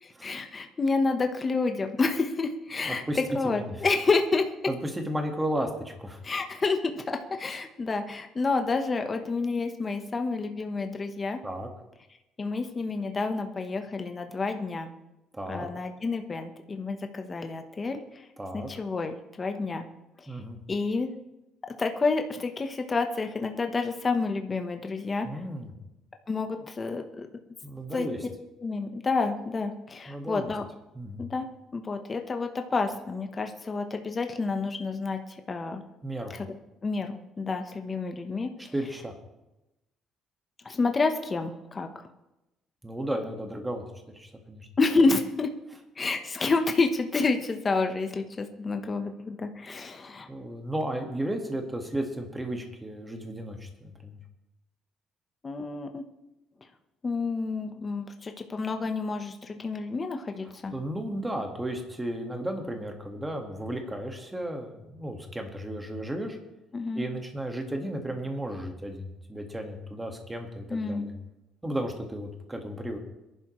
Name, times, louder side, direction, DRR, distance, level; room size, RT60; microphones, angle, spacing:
voice 1, 0.0-4.5 6.2-11.4 12.4-14.9 15.5-18.2 18.5-19.8 20.7-21.1 21.7-25.3 26.3-27.3 27.9-28.3 28.6-30.6 31.2-31.5 31.7-35.2 35.5-35.8 36.3-36.5 36.8-38.5 40.6-42.0 44.8-45.5 46.0-50.3 55.4-56.0 57.0-60.7 66.7-67.0 70.7-71.0, left 3 dB, 25° left, 5 dB, 1.1 m, -29 dB
voice 2, 2.8-3.2 3.4-3.8 4.7-6.2 11.4-11.7 15.3-15.7 18.4-18.7 20.3-20.6 25.2-25.7 27.6-28.2 30.1-30.5 31.0-31.2 36.0-36.3 38.7-39.1 42.8-43.8 44.1-44.7 50.3-54.2 60.7-66.4 67.0-71.1 71.6-73.0, right 1 dB, 10° right, 3 dB, 1.7 m, -34 dB
22.5 x 11.0 x 3.2 m, 0.95 s
cardioid pair, 150°, 0 cm